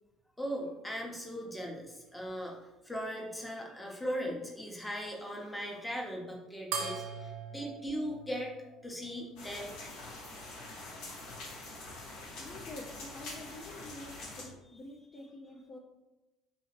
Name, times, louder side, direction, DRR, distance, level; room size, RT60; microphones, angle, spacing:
voice 1, 0.4-2.6 2.8-8.5 8.8-10.1 14.2-14.3, equal, 10° left, -1 dB, 0.9 m, -39 dB
sound 1, 6.7-9.5, right 5 dB, 55° right, 0.5 m, -41 dB
sound 2, 9.4-14.4, left 2 dB, 60° left, 0.9 m, -45 dB
voice 2, 12.4-15.8, left 2 dB, 35° left, -1 dB, 0.5 m, -47 dB
4.1 x 2.7 x 2.9 m, 1.0 s
figure-of-eight pair, 55°, 0 cm